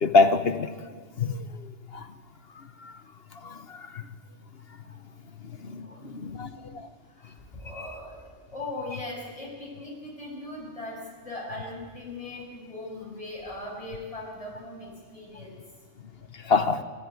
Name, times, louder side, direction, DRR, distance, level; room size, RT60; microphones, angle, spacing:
voice 1, 0.0-0.7 1.2-2.1 2.8-2.9 3.4-4.0 5.4-6.9 16.3-16.8, left 4 dB, 55° left, 10 dB, 1.2 m, -26 dB
voice 2, 5.6-6.7 7.1-15.6, left 2 dB, 25° left, -4 dB, 7.2 m, -40 dB
27.0 x 13.5 x 9.6 m, 1.5 s
omnidirectional pair, 1.2 m